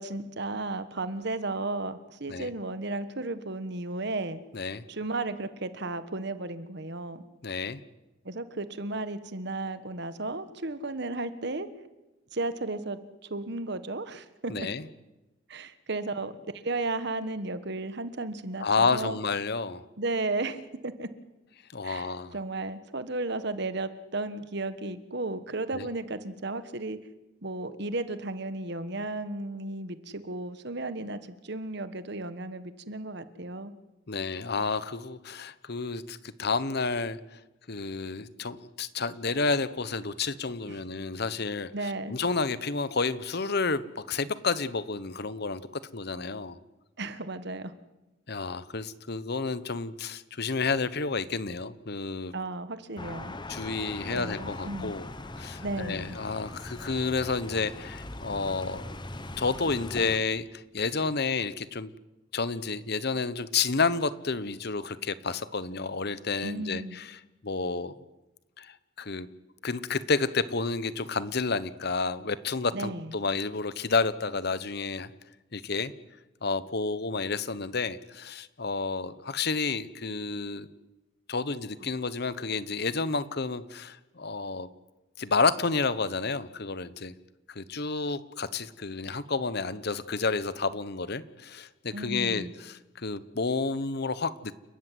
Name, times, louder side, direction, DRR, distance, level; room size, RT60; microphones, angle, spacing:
voice 1, 0.0-4.4 4.9-7.2 8.2-11.7 12.3-14.7 15.5-16.3 16.6-19.2 20.0-21.1 21.8-27.0 27.4-33.7 40.7-40.8 41.7-42.1 47.0-47.7 52.3-53.3 54.1-55.0 55.6-56.2 66.4-67.0 72.7-73.1 91.9-92.5, right 2 dB, 60° right, 12 dB, 1.4 m, -34 dB
voice 2, 4.5-4.8 7.4-7.8 14.5-14.8 18.6-19.8 21.7-22.4 25.7-25.9 34.1-37.2 37.7-46.6 48.3-52.3 53.5-55.1 55.3-58.9 59.4-61.9 62.3-67.9 68.6-69.3 69.6-75.1 75.5-75.9 76.4-80.7 81.3-84.7 85.2-87.1 87.5-94.5, left 4 dB, 55° left, 15 dB, 1.0 m, -30 dB
sound 1, 53.0-60.2, left 2 dB, 25° left, 1.2 m, -40 dB
29.5 x 14.0 x 9.4 m, 1.0 s
head